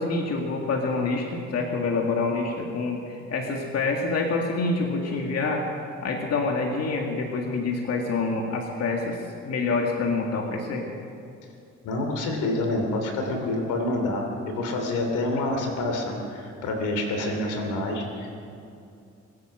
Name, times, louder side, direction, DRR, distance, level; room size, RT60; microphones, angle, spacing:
voice 1, 0.0-5.6 6.0-9.2 9.5-10.9, left 3 dB, 55° left, 1 dB, 2.0 m, -26 dB
voice 2, 11.8-18.5, left 2 dB, 85° left, 3 dB, 3.0 m, -27 dB
23.0 x 9.3 x 6.4 m, 2.5 s
cardioid pair, 90°, 30 cm